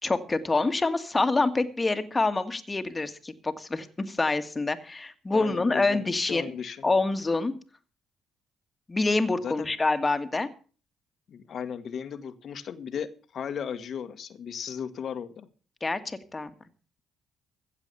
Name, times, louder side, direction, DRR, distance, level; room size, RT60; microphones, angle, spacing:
voice 1, 0.0-6.4 6.8-7.5 8.9-10.5 15.8-16.5, left 3 dB, 25° left, 9 dB, 1.8 m, -26 dB
voice 2, 5.3-6.8 9.4-9.7 11.3-15.5, left 7 dB, 60° left, 10 dB, 1.5 m, -36 dB
15.5 x 7.6 x 6.9 m, 0.40 s
supercardioid pair, 65°, 0 cm